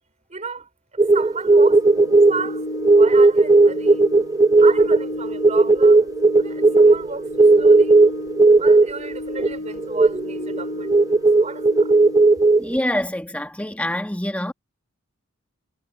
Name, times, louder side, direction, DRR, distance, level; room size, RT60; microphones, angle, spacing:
voice 1, 0.3-0.7 1.1-2.6 2.9-4.1 4.6-6.1 6.4-8.0 8.6-10.9 11.4-12.0, right 4 dB, 35° right, 4.9 m, -33 dB
sound 1, 1.0-9.5 9.8-12.8, right 3 dB, 15° right, 0.3 m, -15 dB
Organ, 1.6-12.6, left 1 dB, 75° left, 3.5 m, -34 dB
voice 2, 12.6-14.5, left 1 dB, 5° left, 1.7 m, -25 dB
head